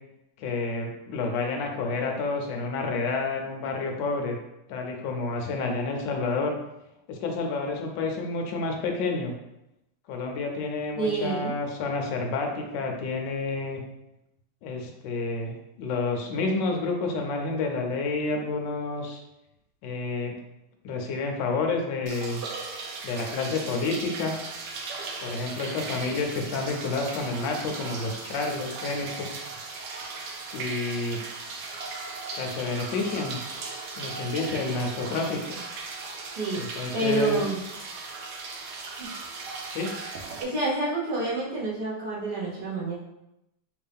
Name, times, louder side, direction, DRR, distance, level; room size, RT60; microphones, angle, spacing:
voice 1, 0.4-4.4 4.7-6.6 7.1-9.3 10.1-13.8 14.6-19.2 19.8-20.4 20.8-22.4 23.0-24.4 25.2-29.3 30.5-31.2 32.4-33.4 34.0-35.4 36.5-37.4 39.7-39.9, left 3 dB, 70° left, 2 dB, 1.1 m, -29 dB
voice 2, 11.0-11.6 36.4-36.7 36.9-37.6 39.0-39.1 40.4-42.9, right 3 dB, 55° right, -6 dB, 0.6 m, -28 dB
sound 1, 22.1-40.4, right 4 dB, 85° right, 0.9 m, -37 dB
3.6 x 2.6 x 3.4 m, 0.88 s
omnidirectional pair, 2.4 m